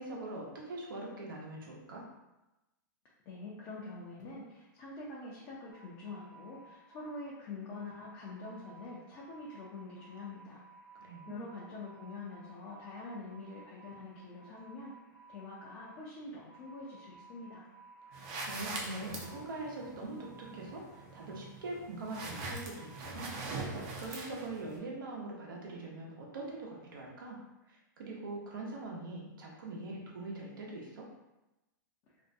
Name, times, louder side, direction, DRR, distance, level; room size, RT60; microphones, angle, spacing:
voice 1, 0.0-2.0 10.9-11.4 18.1-27.4 27.7-31.1, right 2 dB, 85° right, -2 dB, 0.7 m, -43 dB
voice 2, 3.3-10.6 11.3-14.9 15.3-17.6, left 3 dB, 35° left, -5 dB, 0.5 m, -45 dB
sound 1, 5.7-23.4, right 3 dB, 75° left, 0.9 m, -57 dB
sound 2, 18.1-24.8, right 3 dB, 40° right, 0.5 m, -43 dB
2.5 x 2.1 x 2.5 m, 0.99 s
hypercardioid pair, 140°, 11 cm